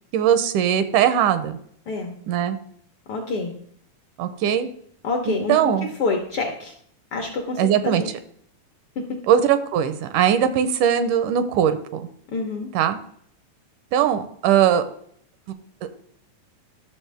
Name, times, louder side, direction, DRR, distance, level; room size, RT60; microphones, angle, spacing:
voice 1, 0.1-1.5 2.3-2.6 4.2-4.7 5.3-5.9 7.6-8.2 9.3-12.0 12.7-13.0 13.9-14.9 15.8-15.9, right 9 dB, 85° right, 11 dB, 2.2 m, -20 dB
voice 2, 3.1-3.6 5.0-6.7 7.1-8.1 12.3-12.7, left 3 dB, 65° left, 2 dB, 1.4 m, -27 dB
12.0 x 6.9 x 3.4 m, 0.64 s
omnidirectional pair, 3.6 m